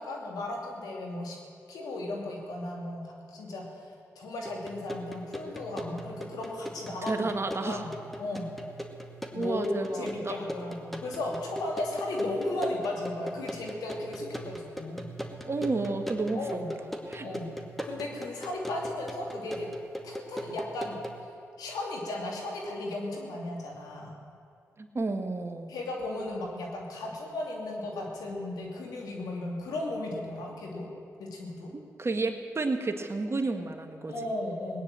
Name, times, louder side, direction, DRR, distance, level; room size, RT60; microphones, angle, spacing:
voice 1, 0.0-1.4 1.7-3.9 4.2-7.3 7.6-7.9 8.2-8.5 9.3-15.1 16.3-16.7 17.2-17.5 17.8-19.7 20.0-21.0 21.6-24.1 25.7-30.9 31.2-31.7 34.1-34.8, left 2 dB, 85° left, -1 dB, 2.7 m, -35 dB
sound 1, 4.4-21.2, equal, ahead, 2.1 m, -40 dB
voice 2, 7.0-7.8 9.3-10.3 15.5-16.6 17.1-17.2 24.8-25.7 31.7-34.1, right 3 dB, 45° right, 6 dB, 1.7 m, -31 dB
18.0 x 10.0 x 7.6 m, 2.4 s
supercardioid pair, 40°, 6 cm